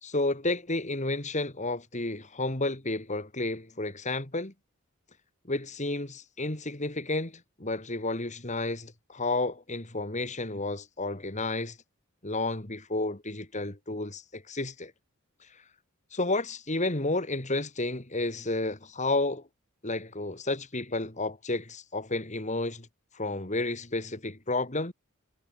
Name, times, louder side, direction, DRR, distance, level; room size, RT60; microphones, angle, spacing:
voice 1, 0.0-4.5 5.5-11.8 12.2-14.9 16.1-19.4 19.8-22.9 23.1-24.9, left 2 dB, 35° left, 3.1 m, -31 dB
head